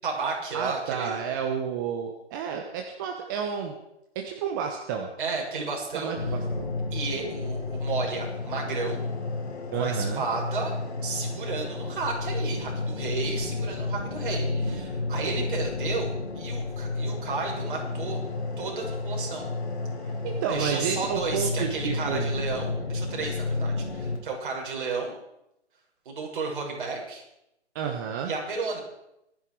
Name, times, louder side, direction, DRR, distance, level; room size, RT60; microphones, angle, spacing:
voice 1, 0.0-1.2 5.2-6.1 6.9-9.0 9.8-10.7 11.0-18.2 18.6-19.4 20.5-25.1 26.0-27.2 28.2-28.8, right 4 dB, 45° right, -1 dB, 6.4 m, -32 dB
voice 2, 0.5-3.7 4.1-5.1 5.9-6.7 9.7-10.2 14.4-14.8 20.0-22.3 27.7-28.3, right 7 dB, 20° right, 3 dB, 1.0 m, -31 dB
sound 1, 6.2-24.2, left 3 dB, 70° left, 5.3 m, -31 dB
26.0 x 10.5 x 4.8 m, 0.84 s
hypercardioid pair, 155°, 35 cm